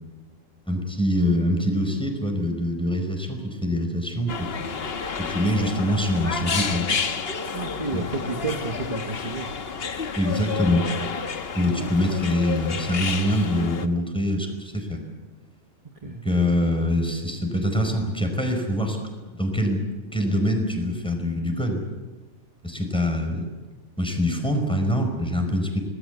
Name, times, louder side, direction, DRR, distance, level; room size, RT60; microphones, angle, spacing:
voice 1, 0.7-4.8 5.2-6.9 7.9-8.0 10.1-10.9 11.5-15.0 16.0-19.0 19.3-19.9 20.1-21.8 22.6-23.5 24.0-25.8, left 1 dB, 5° left, 4 dB, 5.0 m, -24 dB
sound 1, 4.3-13.9, left 5 dB, 45° left, 1.3 m, -30 dB
voice 2, 7.5-9.5 11.6-12.0 16.0-16.2, right 3 dB, 25° right, 5 dB, 1.4 m, -31 dB
26.5 x 19.5 x 8.3 m, 1.3 s
omnidirectional pair, 1.5 m